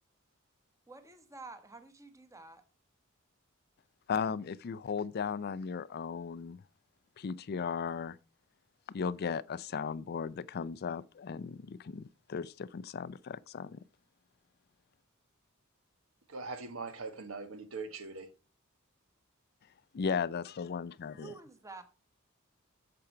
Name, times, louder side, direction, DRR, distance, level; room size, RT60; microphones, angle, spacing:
voice 1, 0.9-2.6 21.2-21.8, right 3 dB, 15° right, 1.2 m, -49 dB
voice 2, 4.1-6.6 7.2-8.2 8.9-13.8 19.9-21.3, left 6 dB, 50° left, 0.4 m, -36 dB
voice 3, 16.3-18.3, right 4 dB, 75° right, 1.4 m, -41 dB
8.7 x 6.9 x 4.5 m
head